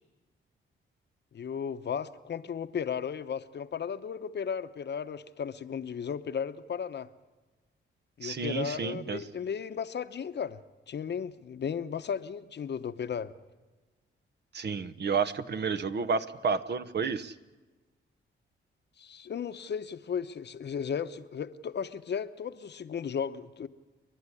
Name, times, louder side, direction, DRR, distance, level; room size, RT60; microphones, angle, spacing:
voice 1, 1.3-7.1 8.2-10.6 10.9-13.3 19.0-23.7, left 7 dB, 55° left, 0.9 m, -35 dB
voice 2, 8.2-9.2 14.5-17.4, right 5 dB, 55° right, 1.1 m, -31 dB
30.0 x 11.5 x 9.9 m
cardioid pair, 95°, 21 cm